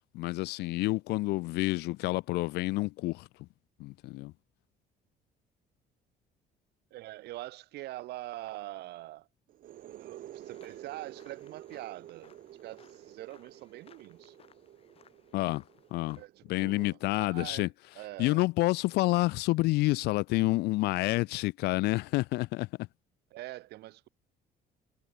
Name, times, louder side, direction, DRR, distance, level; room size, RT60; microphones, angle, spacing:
voice 1, 0.1-3.5 3.8-4.3 15.3-15.6 15.9-16.2 16.5-17.7 18.2-22.9, left 20 dB, 75° left, 0.4 m, -29 dB
voice 2, 6.9-9.3 9.9-12.3 12.6-14.4 16.2-17.7 18.0-18.4 23.3-24.1, right 17 dB, 80° right, 2.5 m, -44 dB
sound 1, 9.5-17.0, right 12 dB, 55° right, 3.1 m, -51 dB
sound 2, 10.4-16.3, left 8 dB, 35° left, 2.3 m, -62 dB
cardioid pair, 150°, 17 cm